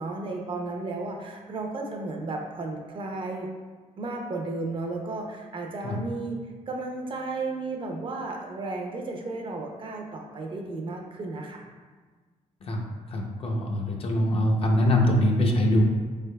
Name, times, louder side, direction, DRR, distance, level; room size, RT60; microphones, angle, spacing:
voice 1, 0.0-3.5 4.0-11.6, right 3 dB, 40° right, 2 dB, 0.5 m, -34 dB
voice 2, 13.1-15.8, left 1 dB, 45° left, 0 dB, 0.6 m, -23 dB
4.4 x 3.3 x 2.2 m, 1.4 s
cardioid pair, 130°, 13 cm